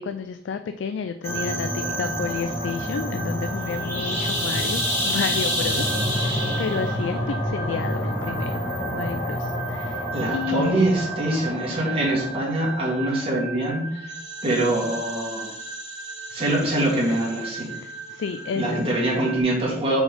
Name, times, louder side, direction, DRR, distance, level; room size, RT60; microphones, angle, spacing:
voice 1, 0.0-8.5 8.9-10.1 10.3-10.8 17.7-18.9, left 6 dB, 70° left, 9 dB, 0.3 m, -31 dB
sound 1, 1.2-19.4, equal, 15° left, 1.8 m, -29 dB
voice 2, 10.1-14.1 14.4-15.5 16.3-17.7 18.6-20.0, right 1 dB, 30° right, -4 dB, 1.9 m, -24 dB
4.6 x 4.2 x 5.3 m, 0.70 s
head